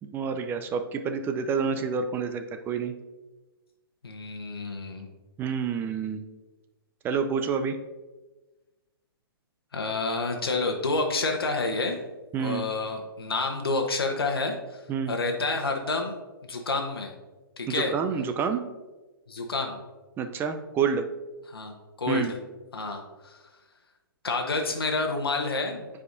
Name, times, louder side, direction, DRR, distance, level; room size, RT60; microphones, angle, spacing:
voice 1, 0.0-2.9 5.4-6.2 7.0-7.8 12.3-12.6 14.9-15.2 17.7-18.7 20.2-21.1 22.1-22.3, right 6 dB, 20° right, 8 dB, 0.4 m, -28 dB
voice 2, 4.0-5.1 9.7-12.0 12.4-14.8 15.1-16.2 16.5-17.1 17.6-17.9 19.3-19.8 21.5-22.3 22.7-23.4 24.2-25.9, left 3 dB, 85° left, 3 dB, 1.0 m, -29 dB
9.4 x 4.9 x 2.6 m, 1.2 s
hypercardioid pair, 130°, 12 cm